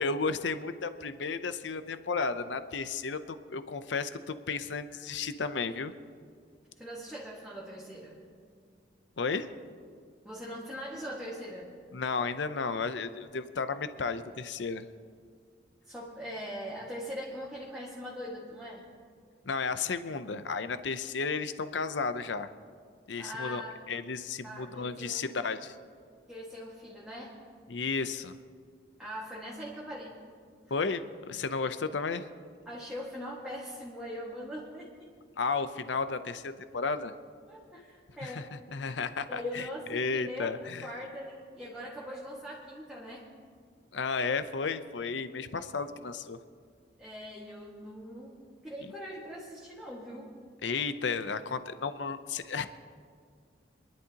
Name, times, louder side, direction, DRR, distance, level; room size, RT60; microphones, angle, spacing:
voice 1, 0.0-5.9 9.2-9.5 11.9-14.9 19.5-22.5 23.1-23.6 23.9-25.8 27.7-28.4 30.7-32.3 35.4-37.1 38.2-38.4 38.7-39.6 39.9-40.9 43.9-46.4 50.6-52.7, left 4 dB, 70° left, 11 dB, 0.6 m, -33 dB
voice 2, 6.8-8.2 10.2-11.7 15.9-18.9 23.2-23.8 24.4-25.4 26.3-27.4 29.0-30.2 32.7-35.1 37.5-38.5 39.3-40.5 40.8-43.3 45.5-45.6 47.0-50.4, equal, 5° right, -7 dB, 1.7 m, -41 dB
27.0 x 11.0 x 2.9 m, 2.1 s
head